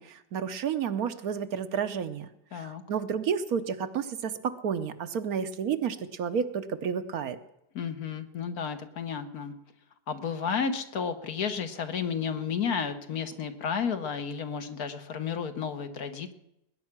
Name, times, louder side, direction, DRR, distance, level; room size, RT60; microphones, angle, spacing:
voice 1, 0.0-7.4, right 7 dB, 65° right, 10 dB, 1.2 m, -31 dB
voice 2, 2.5-2.8 7.7-9.5 10.1-16.3, left 6 dB, 65° left, 8 dB, 1.6 m, -32 dB
20.0 x 9.7 x 6.0 m, 0.83 s
omnidirectional pair, 1.8 m